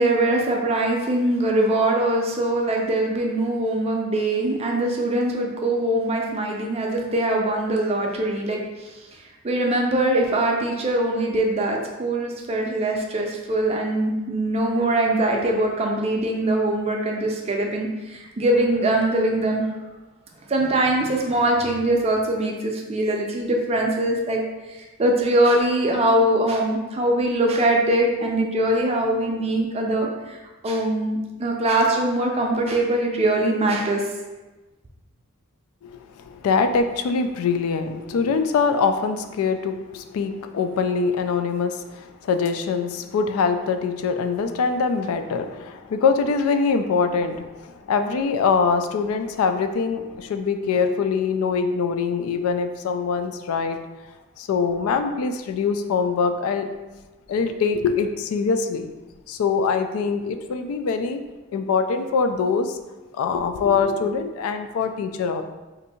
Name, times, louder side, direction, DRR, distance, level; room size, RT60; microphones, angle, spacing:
voice 1, 0.0-8.9 9.4-19.6 20.5-24.4 24.7-30.4 30.6-34.0, right 1 dB, 30° right, 1 dB, 0.4 m, -22 dB
voice 2, 35.8-53.8 54.4-56.7 57.3-58.9 59.3-61.2 61.5-62.8 63.1-65.4, left 5 dB, 80° left, 9 dB, 0.3 m, -23 dB
2.6 x 2.6 x 4.1 m, 1.1 s
head